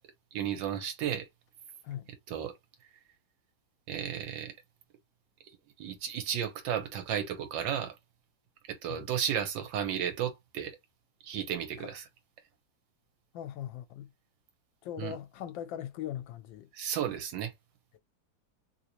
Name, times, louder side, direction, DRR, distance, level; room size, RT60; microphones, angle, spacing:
voice 1, 0.3-1.3 2.3-2.5 3.9-4.5 5.8-7.9 8.7-10.8 11.2-12.1 15.0-15.2 16.7-17.5, right 9 dB, 75° right, 1.5 m, -33 dB
voice 2, 13.3-14.1 14.8-16.7, left 10 dB, 80° left, 1.3 m, -40 dB
3.2 x 2.8 x 2.8 m
omnidirectional pair, 2.1 m